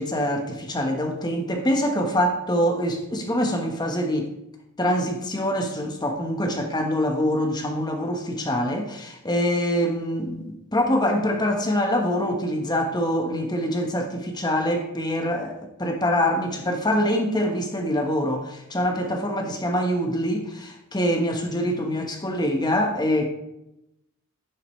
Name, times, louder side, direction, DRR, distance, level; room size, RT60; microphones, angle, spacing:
voice 1, 0.0-4.3 4.8-23.3, equal, 20° left, 1.3 m, -24 dB
10.5 x 9.8 x 3.2 m
head